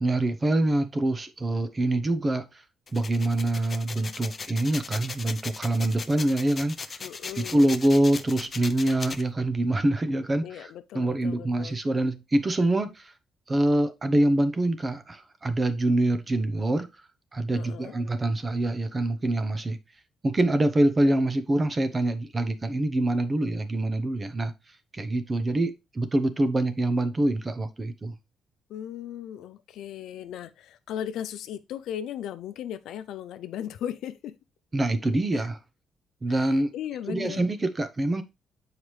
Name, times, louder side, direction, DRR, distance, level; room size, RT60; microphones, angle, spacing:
voice 1, 0.0-2.4 2.9-6.8 7.3-13.1 13.5-16.9 17.3-19.8 20.2-24.5 24.9-28.1 34.7-35.6 36.2-36.7 37.1-38.2, right 1 dB, 30° right, 0.9 m, -25 dB
sound 1, 2.9-9.2, left 4 dB, 35° left, 0.6 m, -38 dB
voice 2, 7.0-7.7 10.4-11.8 17.5-17.9 28.7-34.3 35.3-35.5 36.3-37.5, left 10 dB, 80° left, 0.5 m, -37 dB
7.2 x 4.8 x 3.2 m
cardioid pair, 90°, 0 cm